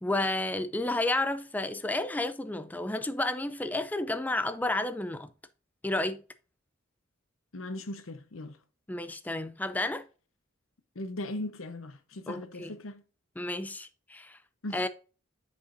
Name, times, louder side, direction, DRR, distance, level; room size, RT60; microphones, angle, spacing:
voice 1, 0.0-5.3 5.8-6.2 8.9-10.0 12.3-12.7 13.4-14.4 14.7-14.9, left 2 dB, 10° left, 0.4 m, -31 dB
voice 2, 7.5-8.6 11.0-13.0 14.6-14.9, left 1 dB, 80° left, 0.9 m, -38 dB
9.1 x 5.3 x 2.5 m
head